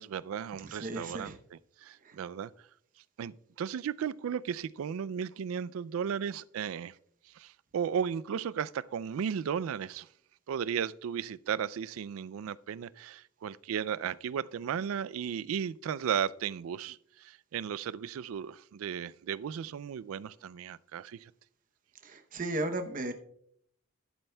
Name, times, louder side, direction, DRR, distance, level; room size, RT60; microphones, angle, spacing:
voice 1, 0.0-2.5 3.2-7.0 7.3-10.1 10.5-21.3, right 8 dB, 80° right, 0.3 m, -35 dB
voice 2, 0.6-1.4 2.0-2.2 22.0-23.1, right 1 dB, 40° right, 0.8 m, -35 dB
13.5 x 11.0 x 2.2 m
head